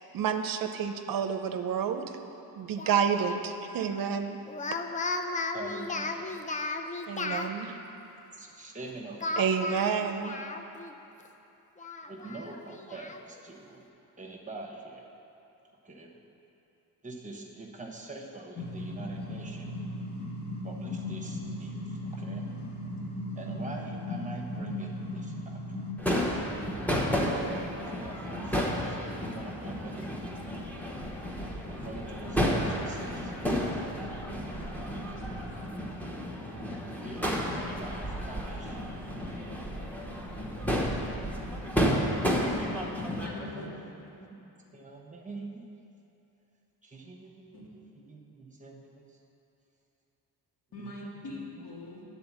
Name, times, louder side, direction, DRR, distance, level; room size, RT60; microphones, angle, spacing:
voice 1, 0.1-2.2 2.6-4.4 7.1-7.8 9.4-10.4, right 7 dB, 60° right, 7 dB, 0.6 m, -29 dB
Speech, 2.8-3.4 4.5-7.5 9.2-10.9 11.3-11.4 11.8-13.2, left 3 dB, 20° left, 0.4 m, -35 dB
voice 2, 5.5-6.4 8.3-9.4 12.0-13.9 14.2-15.1 15.8-16.2 17.0-19.7 20.6-22.5 23.3-25.6 27.1-29.0 29.2-30.1 31.6-33.3 37.0-38.8 39.2-39.3 43.3-45.7 46.8-49.2 50.8-50.9 51.6-51.7, right 3 dB, 20° right, -1 dB, 1.1 m, -44 dB
sound 1, 18.6-25.9, left 1 dB, 45° left, 1.8 m, -37 dB
Crowd / Fireworks, 26.0-43.3, equal, 5° left, 1.0 m, -32 dB
voice 3, 34.2-35.5 43.2-43.7 47.5-47.6 50.7-52.0, left 2 dB, 65° left, -5 dB, 2.1 m, -43 dB
9.6 x 4.1 x 7.2 m, 2.8 s
cardioid pair, 95°, 39 cm